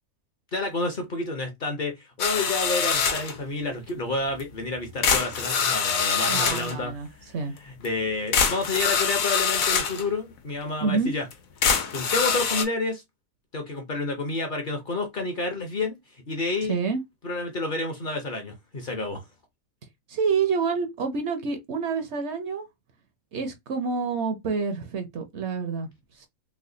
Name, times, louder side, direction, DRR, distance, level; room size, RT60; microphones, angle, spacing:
voice 1, 0.5-6.9 7.2-7.3 7.7-11.3 11.9-13.0 13.5-16.0 16.3-16.8 17.2-19.2, left 2 dB, 45° left, 0.8 m, -29 dB
sound 1, 2.2-3.4 4.4-4.5 5.0-6.7 7.8-7.9 8.3-10.0 10.6-10.7 11.3-11.4 11.6-12.6, left 6 dB, 80° left, 1.2 m, -24 dB
voice 2, 6.3-7.1 7.3-7.5 10.8-11.1 16.7-17.0 20.1-22.7 23.3-26.3, right 5 dB, 60° right, 0.9 m, -28 dB
3.2 x 2.2 x 3.8 m
omnidirectional pair, 1.4 m